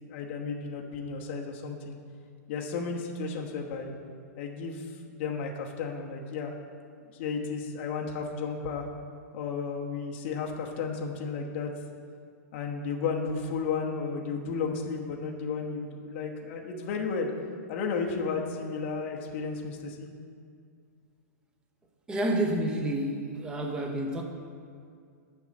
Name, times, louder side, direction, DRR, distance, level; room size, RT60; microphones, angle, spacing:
voice 1, 0.1-2.0 2.5-3.9 4.4-6.6 7.2-8.8 9.3-11.7 12.5-17.3 17.7-20.1, left 5 dB, 40° left, 0 dB, 1.1 m, -33 dB
voice 2, 22.1-24.2, right 1 dB, 10° right, 2 dB, 0.7 m, -29 dB
7.0 x 5.6 x 7.2 m, 2.3 s
hypercardioid pair, 165°, 9 cm